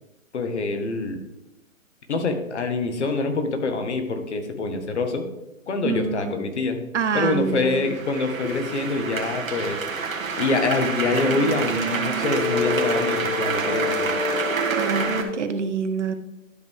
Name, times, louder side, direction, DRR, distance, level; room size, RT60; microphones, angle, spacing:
voice 1, 0.3-1.2 2.1-5.2 5.7-6.8 7.1-9.8 10.3-14.2, left 3 dB, 55° left, 6 dB, 1.6 m, -25 dB
voice 2, 5.8-6.3 6.9-7.9 14.7-16.1, right 5 dB, 60° right, 9 dB, 0.9 m, -26 dB
sound 1, 7.1-15.2, right 3 dB, 75° right, 1.7 m, -26 dB
12.0 x 5.3 x 3.7 m, 0.93 s
figure-of-eight pair, 135°, 41 cm